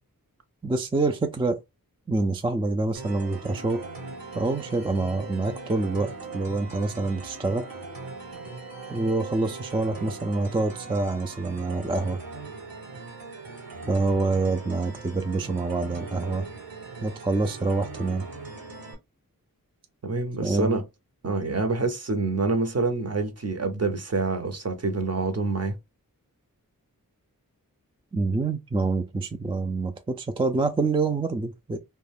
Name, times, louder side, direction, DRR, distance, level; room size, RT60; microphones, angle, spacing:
voice 1, 0.6-1.6 2.1-3.8 4.3-7.6 8.9-12.2 13.9-16.5 17.0-18.3 20.4-20.8 28.1-31.8, right 3 dB, 15° right, 0.3 m, -26 dB
sound 1, 2.9-18.9, right 3 dB, 70° right, 1.3 m, -40 dB
voice 2, 20.0-20.8 21.2-25.7, right 3 dB, 45° right, 0.7 m, -26 dB
2.3 x 2.2 x 3.3 m
wide cardioid pair, 70°, 36 cm